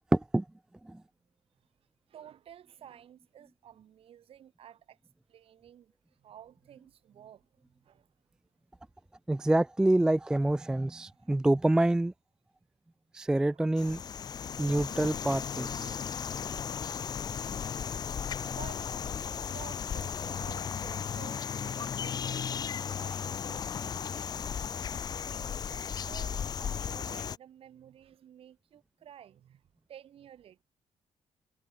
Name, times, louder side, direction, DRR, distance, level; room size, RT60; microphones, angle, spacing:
voice 1, 0.1-0.4 0.8-1.0 9.3-12.1 13.1-14.0 14.6-16.0, right 1 dB, 5° right, 0.3 m, -27 dB
voice 2, 2.1-5.0 5.3-8.1 11.2-11.3 13.5-13.6 18.4-29.6 29.9-30.6, right 10 dB, 60° right, 2.6 m, -53 dB
sound 1, 13.8-27.4, left 7 dB, 35° left, 0.6 m, -35 dB
cardioid pair, 145°, 11 cm